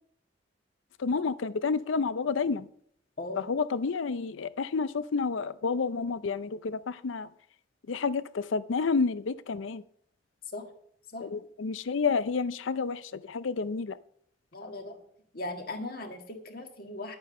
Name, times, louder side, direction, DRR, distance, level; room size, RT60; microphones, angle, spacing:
voice 1, 1.0-2.7 3.4-7.3 7.9-9.8 11.2-14.0, left 4 dB, 85° left, 16 dB, 0.5 m, -30 dB
voice 2, 14.5-15.0 15.3-17.2, left 2 dB, 50° left, 4 dB, 1.8 m, -38 dB
11.5 x 8.7 x 5.4 m, 0.65 s
head